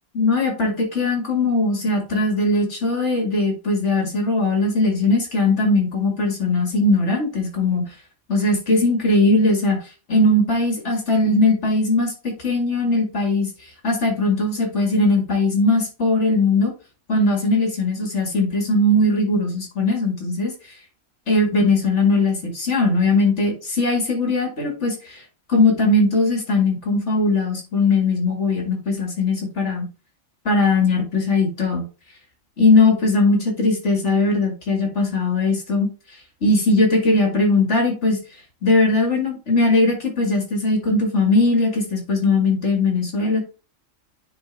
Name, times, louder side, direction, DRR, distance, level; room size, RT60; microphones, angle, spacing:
voice 1, 0.1-7.9 8.3-9.8 10.1-13.5 13.8-16.7 17.1-20.5 21.3-25.2 25.5-29.9 30.5-31.9 32.6-35.9 36.4-38.2 38.6-43.4, left 2 dB, 60° left, 2 dB, 2.3 m, -19 dB
9.4 x 3.7 x 3.4 m, 0.33 s
omnidirectional pair, 1.4 m